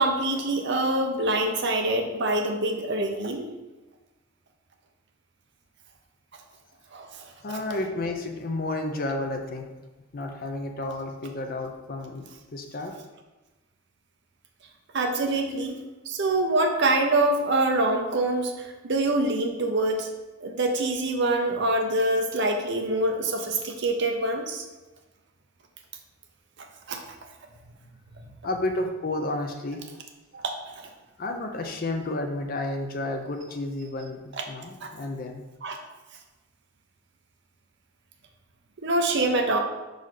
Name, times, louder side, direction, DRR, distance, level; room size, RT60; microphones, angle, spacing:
voice 1, 0.0-3.4 6.9-7.6 14.9-15.8 16.1-20.1 20.4-24.6 26.9-27.0 30.3-30.5 34.3-34.4 34.8-34.9 35.6-35.8 38.8-39.6, right 2 dB, 55° right, 3 dB, 0.7 m, -25 dB
voice 2, 7.4-9.7 10.1-12.3 12.5-12.9 28.4-29.8 31.2-35.4, left 2 dB, 45° left, 4 dB, 0.6 m, -31 dB
5.4 x 3.9 x 4.9 m, 1.1 s
head